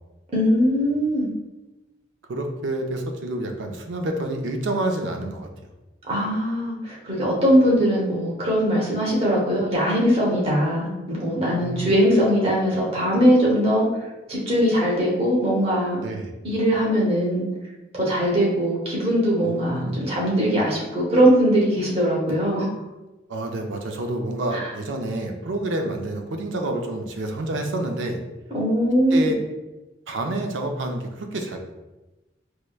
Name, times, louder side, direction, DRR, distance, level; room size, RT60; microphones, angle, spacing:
voice 1, 0.3-1.3 6.1-13.9 14.3-16.0 16.4-17.4 17.9-22.7 24.5-24.6 28.5-29.3, equal, 30° right, -5 dB, 0.9 m, -21 dB
voice 2, 2.3-5.5 11.4-11.9 16.0-16.3 19.4-20.0 23.3-28.2 29.1-29.4 30.1-31.6, right 1 dB, 85° right, 4 dB, 0.5 m, -28 dB
4.6 x 2.1 x 2.3 m, 1.1 s
head